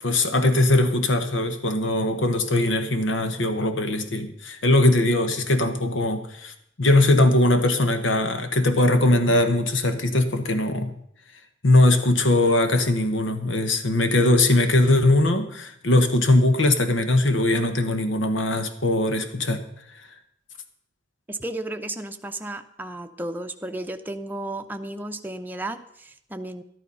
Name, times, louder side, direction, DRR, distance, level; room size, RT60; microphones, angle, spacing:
voice 1, 0.0-6.5 6.8-10.9 11.6-19.6, left 2 dB, 80° left, 8 dB, 1.2 m, -20 dB
voice 2, 21.3-26.6, right 1 dB, 10° right, 5 dB, 0.7 m, -33 dB
12.5 x 11.5 x 5.5 m, 0.71 s
head